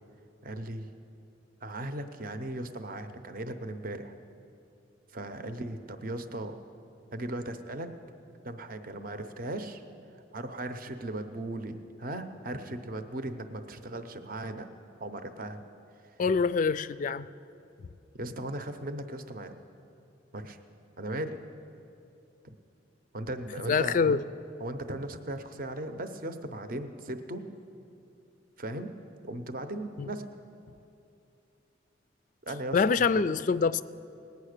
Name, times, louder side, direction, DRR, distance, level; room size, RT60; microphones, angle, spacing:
voice 1, 0.4-0.9 1.6-4.1 5.1-6.6 7.1-7.9 8.4-9.8 10.3-14.7 15.0-15.6 18.1-19.6 20.3-20.6 21.0-21.4 22.4-22.5 23.1-24.2 24.6-27.4 28.6-28.9 29.2-30.2 32.4-33.2, right 1 dB, 50° right, 9 dB, 0.7 m, -37 dB
voice 2, 16.2-17.3 23.7-24.2 30.0-30.1 32.7-33.8, left 5 dB, 45° left, 16 dB, 0.3 m, -25 dB
18.5 x 9.4 x 6.6 m, 2.7 s
head